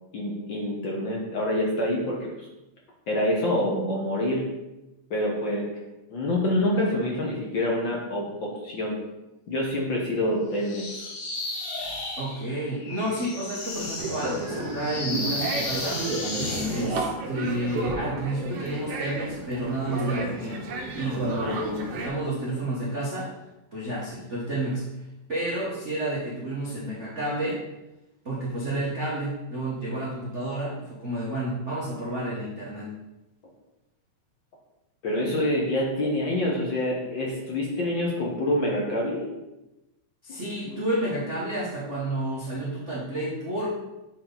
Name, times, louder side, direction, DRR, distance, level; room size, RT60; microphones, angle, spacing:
voice 1, 0.1-2.5 3.1-4.5 5.1-5.7 6.1-9.0 9.5-11.1 16.5-16.9 22.8-22.9 35.0-39.3 40.3-40.4 40.7-40.8, left 1 dB, 60° left, -2 dB, 1.3 m, -27 dB
sound 1, 10.6-16.9, left 2 dB, 75° left, 2.8 m, -34 dB
voice 2, 12.2-16.0 16.6-20.6 20.9-23.3 23.7-24.8 25.3-27.6 28.2-32.9 40.2-43.7, right 1 dB, 85° right, -7 dB, 0.6 m, -30 dB
sound 2, 14.0-22.1, right 3 dB, 65° right, 1.6 m, -32 dB
8.9 x 4.3 x 4.0 m, 0.98 s
omnidirectional pair, 3.7 m